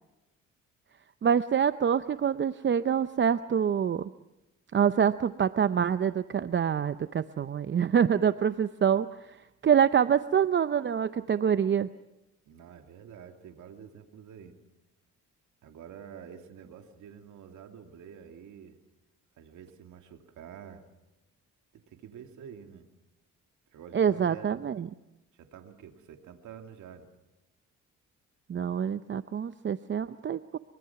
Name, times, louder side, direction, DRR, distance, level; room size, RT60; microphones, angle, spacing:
voice 1, 1.2-4.1 4.7-9.1 9.6-11.9 23.9-24.9 28.5-30.6, right 8 dB, 40° right, 13 dB, 0.7 m, -26 dB
voice 2, 12.5-14.5 15.6-18.8 19.4-20.8 21.7-22.9 23.7-24.6 25.3-27.1, right 8 dB, 75° right, 5 dB, 2.6 m, -48 dB
24.0 x 23.5 x 5.9 m, 1.0 s
cardioid pair, 90°, 30 cm